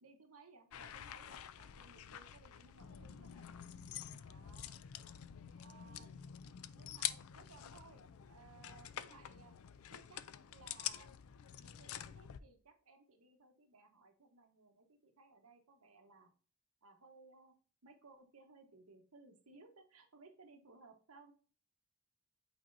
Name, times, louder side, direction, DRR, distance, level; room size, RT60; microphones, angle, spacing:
voice 1, 0.0-3.5 4.2-4.8 5.6-6.1 6.7-9.5 9.9-10.2 10.5-11.1 11.5-16.3 16.8-17.5 17.8-21.3, right 4 dB, 85° right, 4 dB, 1.2 m, -62 dB
sound 1, 0.7-12.4, left 11 dB, 75° left, 0.4 m, -47 dB
8.4 x 4.4 x 2.6 m, 0.40 s
head